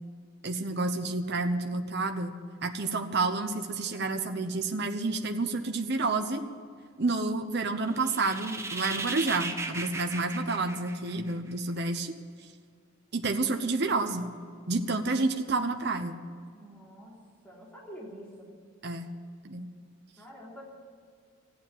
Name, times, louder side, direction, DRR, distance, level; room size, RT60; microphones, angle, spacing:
voice 1, 0.4-6.4 7.0-12.1 13.1-14.3 14.7-16.2 18.8-19.1 19.4-19.7, right 3 dB, 55° right, 6 dB, 1.0 m, -29 dB
sound 1, 7.9-11.5, right 3 dB, 15° right, 0.9 m, -36 dB
voice 2, 16.5-18.5 20.2-20.6, equal, 5° left, -5 dB, 3.3 m, -47 dB
14.5 x 9.6 x 8.9 m, 2.2 s
head